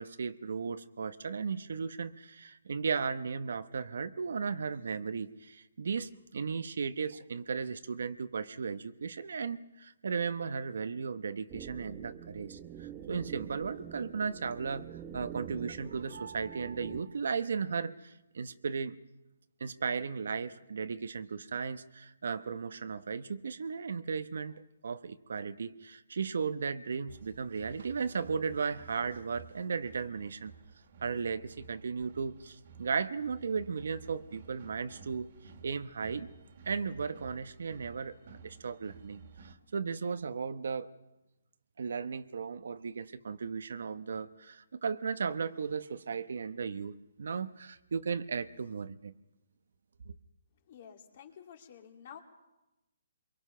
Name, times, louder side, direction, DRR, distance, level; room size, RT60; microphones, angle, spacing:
voice 1, 0.0-18.9 19.6-24.5 24.8-30.5 31.0-35.3 35.6-36.3 36.6-40.9 41.8-49.1 50.0-50.1, right 5 dB, 65° right, 12 dB, 1.0 m, -36 dB
sound 1, 11.5-17.0, right 10 dB, 25° right, 1.0 m, -46 dB
sound 2, 27.1-39.5, right 5 dB, 50° right, 2.1 m, -54 dB
voice 2, 50.7-52.2, left 8 dB, 40° left, 4 dB, 2.6 m, -51 dB
23.5 x 23.0 x 5.7 m, 0.95 s
hypercardioid pair, 160°, 0 cm